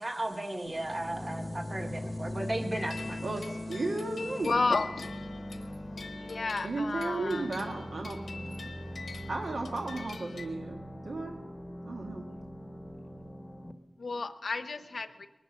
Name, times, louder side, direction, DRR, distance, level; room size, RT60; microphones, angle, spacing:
voice 1, 0.0-3.2, right 1 dB, 30° right, 5 dB, 1.6 m, -35 dB
sound 1, 0.6-13.7, left 1 dB, 20° left, 1.0 m, -41 dB
sound 2, 2.7-10.5, left 4 dB, 85° left, 1.2 m, -46 dB
voice 2, 3.2-4.5 6.6-8.2 8.4-8.7 9.3-11.4 11.8-12.3, right 2 dB, 75° right, 1 dB, 1.5 m, -35 dB
voice 3, 4.4-4.9 6.2-7.8 14.0-15.3, left 3 dB, 65° left, 11 dB, 1.0 m, -32 dB
21.0 x 10.0 x 6.5 m, 1.2 s
wide cardioid pair, 90°, 0 cm